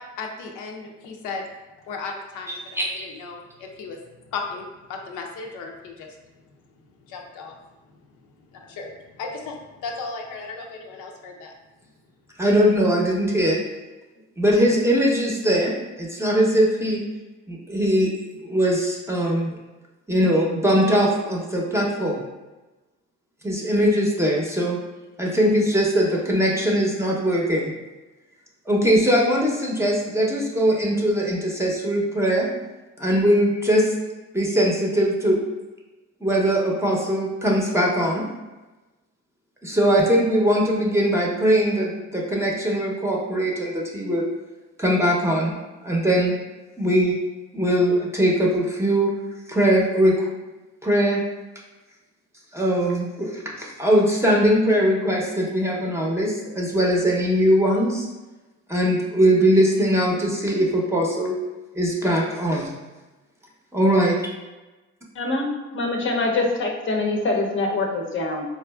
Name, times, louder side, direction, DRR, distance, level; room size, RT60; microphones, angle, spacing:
voice 1, 0.2-1.5 1.9-4.0 4.3-6.1 7.1-7.6 8.5-8.9 9.2-11.5, left 4 dB, 80° left, 1 dB, 0.6 m, -35 dB
voice 2, 2.5-2.9 12.4-13.6 14.4-17.0 17.5-19.6 20.1-22.3 23.4-24.8 25.2-27.7 28.7-32.5 33.0-33.9 34.3-35.4 36.2-38.2 39.6-44.3 44.8-45.5 45.8-46.3 46.8-47.2 47.5-49.1 49.5-50.3 50.8-51.2 52.5-58.1 58.7-61.3 61.7-62.7 63.7-64.2, equal, 10° right, -2 dB, 0.6 m, -21 dB
voice 3, 65.2-68.4, left 2 dB, 40° left, 2 dB, 0.6 m, -24 dB
4.0 x 2.5 x 2.3 m, 1.1 s
cardioid pair, 90°, 30 cm